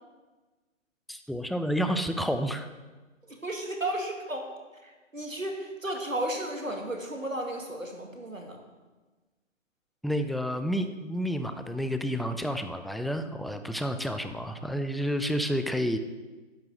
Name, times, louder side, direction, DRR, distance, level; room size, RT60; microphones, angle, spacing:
voice 1, 1.1-2.7 10.0-16.0, equal, ahead, 8 dB, 0.3 m, -30 dB
voice 2, 3.2-4.5 4.8-8.6, right 1 dB, 85° right, 2 dB, 2.5 m, -34 dB
10.5 x 6.2 x 7.4 m, 1.3 s
figure-of-eight pair, 155°, 39 cm